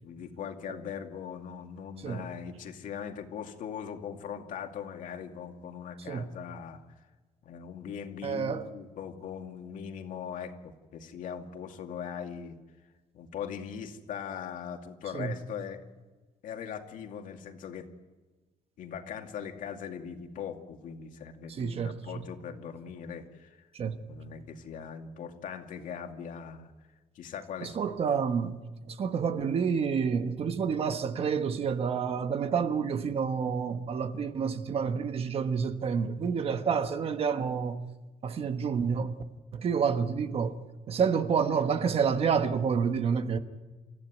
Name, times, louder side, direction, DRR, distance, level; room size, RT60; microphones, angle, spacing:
voice 1, 0.0-6.8 7.4-12.6 13.1-15.8 16.4-17.9 18.8-23.6 24.1-26.7 27.1-28.2, left 7 dB, 75° left, 2.4 m, -40 dB
voice 2, 8.2-8.7 15.1-15.4 21.5-22.2 23.7-24.0 27.6-28.6 28.8-37.8 38.2-39.1 39.5-40.6 40.9-43.4, right 6 dB, 45° right, 1.3 m, -29 dB
29.0 x 14.5 x 9.3 m
cardioid pair, 170°, 14 cm